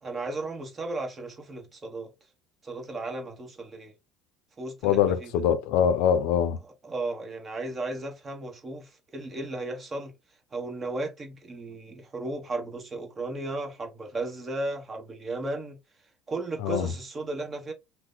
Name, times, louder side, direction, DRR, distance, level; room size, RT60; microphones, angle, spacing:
voice 1, 0.0-2.1 2.6-3.9 4.6-5.3 6.8-10.1 10.5-15.8 16.3-17.7, right 2 dB, 25° right, 1.2 m, -35 dB
voice 2, 4.8-6.6 16.6-16.9, left 9 dB, 75° left, 0.5 m, -23 dB
2.8 x 2.1 x 3.8 m
supercardioid pair, 105°, 0 cm